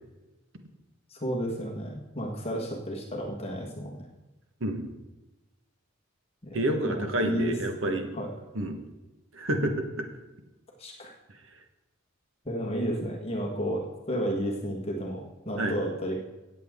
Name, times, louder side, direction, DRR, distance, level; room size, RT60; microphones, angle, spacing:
voice 1, 1.1-4.0 6.4-7.5 8.1-8.3 10.8-11.1 12.4-16.2, equal, 30° left, 0 dB, 1.5 m, -32 dB
voice 2, 6.5-8.1 8.5-8.8 9.3-10.1 15.6-15.8, right 1 dB, 65° right, 5 dB, 1.3 m, -28 dB
18.5 x 7.7 x 3.7 m, 1.0 s
head